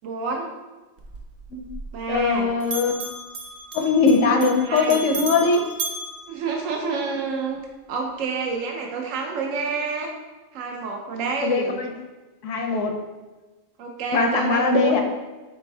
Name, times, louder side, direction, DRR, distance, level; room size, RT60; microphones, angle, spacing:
voice 1, 0.0-0.5 1.9-2.5 4.6-5.0 6.3-7.6 7.9-10.1 10.5-11.8 13.8-15.0, right 4 dB, 85° right, 1 dB, 1.0 m, -28 dB
Bell, 1.0-2.4 2.6-7.1, right 2 dB, 55° right, 0.7 m, -35 dB
voice 2, 2.1-2.9 3.7-5.6 11.4-11.9 12.4-13.0 14.1-15.0, left 4 dB, 75° left, 4 dB, 0.9 m, -20 dB
4.2 x 3.4 x 3.2 m, 1.2 s
omnidirectional pair, 1.3 m